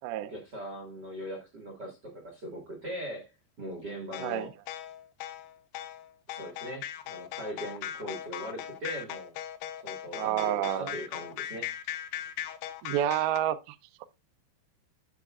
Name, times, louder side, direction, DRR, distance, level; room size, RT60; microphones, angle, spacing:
voice 1, 0.3-3.3 3.6-4.5 6.3-9.4 9.8-11.7, equal, 55° right, 1.2 m, -40 dB
sound 1, 4.1-13.4, left 11 dB, 80° left, 2.5 m, -39 dB
voice 2, 10.1-10.9 12.8-13.8 14.0-14.1, right 12 dB, 80° right, 2.2 m, -29 dB
13.0 x 4.7 x 2.3 m
omnidirectional pair, 5.0 m